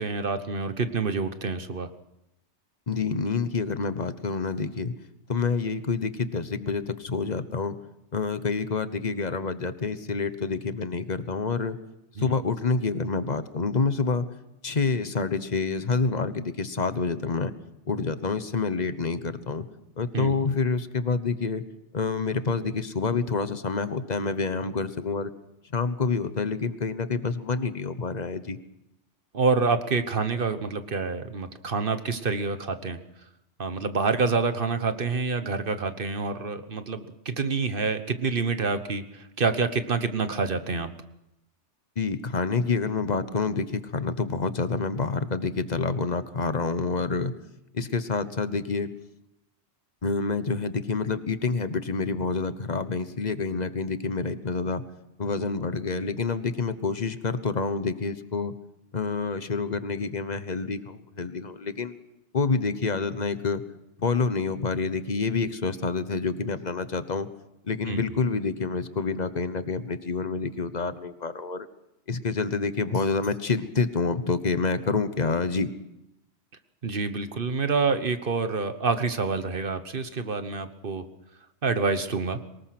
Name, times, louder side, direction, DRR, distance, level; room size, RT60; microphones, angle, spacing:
voice 1, 0.0-1.9 12.2-12.3 20.1-20.3 29.3-33.0 33.6-40.9 67.9-68.0 76.8-81.0 81.6-82.4, right 4 dB, 50° right, 10 dB, 1.3 m, -27 dB
voice 2, 2.9-4.9 5.3-7.8 8.1-11.8 12.2-14.3 14.6-17.5 17.9-19.7 20.0-21.6 21.9-25.3 25.7-28.6 42.0-47.3 47.7-48.9 50.0-54.8 55.2-58.5 58.9-61.9 62.3-63.6 64.0-67.3 67.6-71.7 72.1-75.7, left 4 dB, 40° left, 12 dB, 1.2 m, -27 dB
23.5 x 20.0 x 6.0 m, 0.86 s
omnidirectional pair, 1.2 m